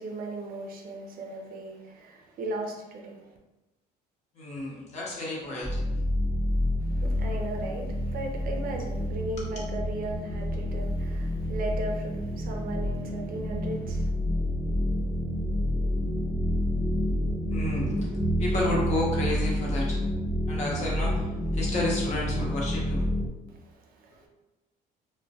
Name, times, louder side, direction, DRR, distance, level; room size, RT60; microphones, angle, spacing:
voice 1, 0.0-3.3 6.8-14.1 23.5-24.3, right 2 dB, 60° right, 1 dB, 0.5 m, -37 dB
voice 2, 4.3-5.8 9.4-9.7 17.5-20.0 20.5-23.0 24.1-24.2, left 2 dB, 40° left, -4 dB, 0.9 m, -31 dB
sound 1, 5.6-23.3, equal, 5° left, 0.6 m, -29 dB
2.2 x 2.1 x 2.6 m, 1.1 s
cardioid pair, 110°, 17 cm